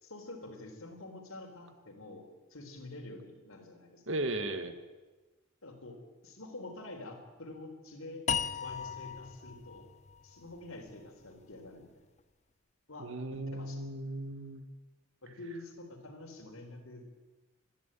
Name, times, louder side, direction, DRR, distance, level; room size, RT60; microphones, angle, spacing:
voice 1, 0.0-2.2 2.5-4.0 5.6-6.0 6.2-8.2 8.6-9.8 10.2-11.9 12.9-13.9 15.2-17.1, left 2 dB, 75° left, 3 dB, 4.0 m, -47 dB
voice 2, 4.1-4.8 13.0-14.7, right 1 dB, 65° right, 9 dB, 1.7 m, -36 dB
sound 1, 8.3-11.5, left 7 dB, 30° left, 0.6 m, -37 dB
26.5 x 11.0 x 9.1 m, 1.2 s
head